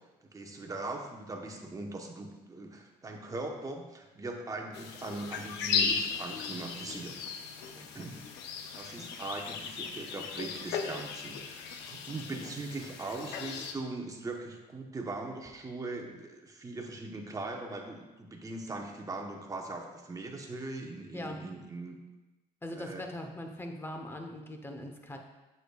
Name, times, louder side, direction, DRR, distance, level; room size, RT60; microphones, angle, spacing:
voice 1, 0.2-7.1 7.6-8.2 8.7-22.0 22.7-23.0, right 2 dB, 20° right, 2 dB, 1.0 m, -40 dB
sound 1, 4.7-13.7, left 6 dB, 90° left, 0.6 m, -36 dB
voice 2, 22.6-25.2, left 1 dB, 15° left, 3 dB, 0.9 m, -41 dB
7.7 x 6.5 x 2.3 m, 1.1 s
cardioid pair, 110°, 17 cm